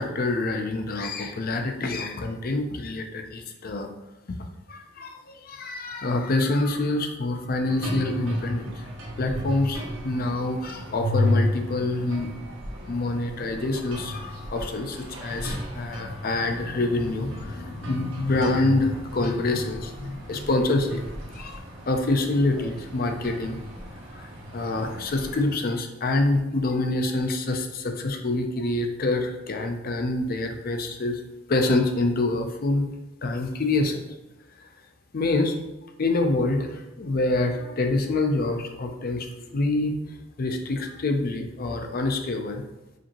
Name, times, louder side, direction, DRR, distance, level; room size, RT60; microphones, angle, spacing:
voice 1, 0.0-3.9 4.4-8.9 9.2-12.3 12.9-21.0 21.3-23.6 24.1-31.2 31.5-32.9 33.2-34.0 34.6-34.7 35.1-35.5 36.0-42.6, left 2 dB, 50° left, 5 dB, 0.5 m, -26 dB
sound 1, 7.6-25.5, left 1 dB, 75° right, 0.9 m, -33 dB
5.0 x 2.7 x 2.9 m, 0.99 s
head